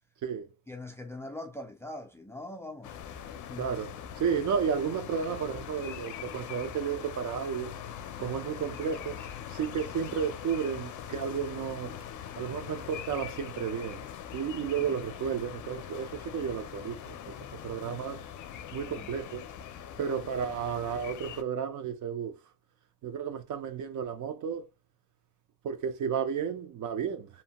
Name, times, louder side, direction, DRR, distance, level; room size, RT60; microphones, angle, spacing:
voice 1, 0.7-3.0 3.5-3.7 14.8-15.0 18.9-19.1, left 1 dB, 10° left, 0.3 m, -42 dB
sound 1, 2.8-21.4, left 9 dB, 70° left, 0.5 m, -42 dB
voice 2, 3.6-7.7 8.2-9.2 9.5-12.0 12.4-14.0 14.3-17.3 17.6-18.2 18.7-19.4 20.0-22.3 23.0-24.7 25.6-27.3, right 7 dB, 65° right, 0.5 m, -32 dB
2.8 x 2.2 x 2.8 m
cardioid pair, 160°, 32 cm